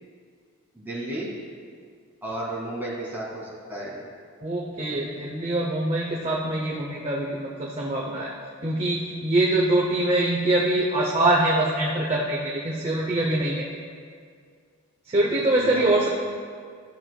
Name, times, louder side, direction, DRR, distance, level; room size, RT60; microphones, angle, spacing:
voice 1, 0.7-1.3 2.2-4.0 15.6-16.0, right 1 dB, 10° right, -7 dB, 2.0 m, -33 dB
voice 2, 4.4-8.3 8.6-13.7 15.1-16.1, right 1 dB, 25° right, -3 dB, 0.6 m, -24 dB
12.5 x 7.5 x 2.2 m, 2.1 s
head